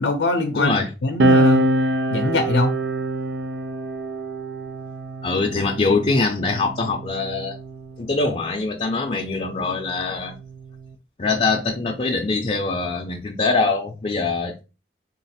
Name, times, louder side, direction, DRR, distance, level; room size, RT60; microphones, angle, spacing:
voice 1, 0.0-0.8 1.0-1.7 2.1-2.7, left 2 dB, 85° left, 0.5 m, -22 dB
voice 2, 0.5-0.9 5.2-7.6 8.0-10.3 11.2-14.6, left 3 dB, 35° left, 0.5 m, -23 dB
sound 1, 1.2-8.1 9.1-10.9, right 1 dB, 80° right, 0.5 m, -25 dB
3.9 x 2.4 x 4.1 m
head